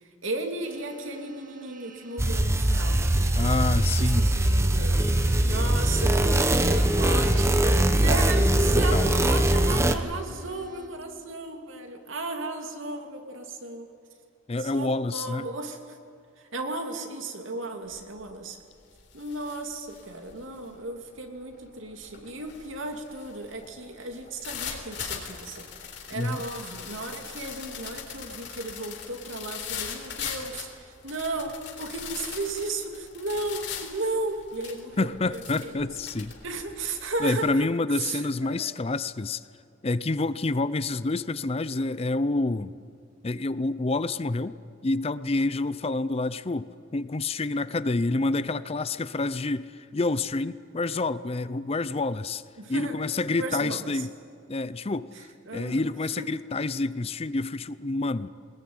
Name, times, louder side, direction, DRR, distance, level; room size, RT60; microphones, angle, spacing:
voice 1, 0.2-13.9 14.6-16.0 16.4-18.6 19.1-25.6 26.1-35.7 36.4-37.7 38.0-38.8 52.6-53.0 53.4-54.1 55.2-55.9 56.2-56.3, right 2 dB, 80° right, 4 dB, 2.7 m, -35 dB
sound 1, 0.6-10.9, right 6 dB, 40° right, 2.1 m, -49 dB
sound 2, 2.2-10.0, right 1 dB, 15° right, 1.0 m, -22 dB
voice 2, 3.3-4.3 8.7-9.1 14.5-15.5 26.1-26.4 35.0-36.3 37.2-39.4 39.8-42.7 43.2-44.6 44.8-52.4 52.7-54.1 54.5-55.1 55.5-58.3, left 2 dB, 30° left, 15 dB, 0.5 m, -28 dB
sound 3, 17.9-18.2 18.6-37.5, left 7 dB, 60° left, 3.9 m, -40 dB
22.0 x 20.5 x 9.4 m, 2.3 s
head